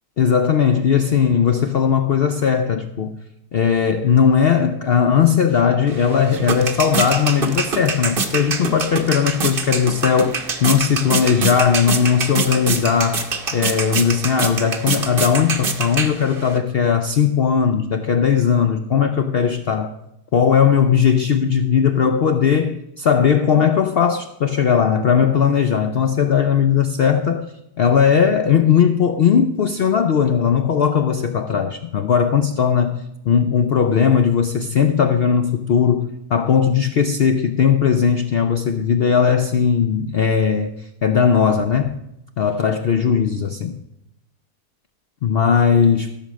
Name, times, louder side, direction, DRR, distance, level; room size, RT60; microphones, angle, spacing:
voice 1, 0.2-3.1 3.5-13.3 13.5-20.0 20.3-42.0 42.4-43.8 45.2-46.1, left 7 dB, 75° left, 0.5 m, -18 dB
sound 1, 5.9-16.6, right 4 dB, 40° right, 1.1 m, -25 dB
14.5 x 6.3 x 6.3 m
omnidirectional pair, 1.7 m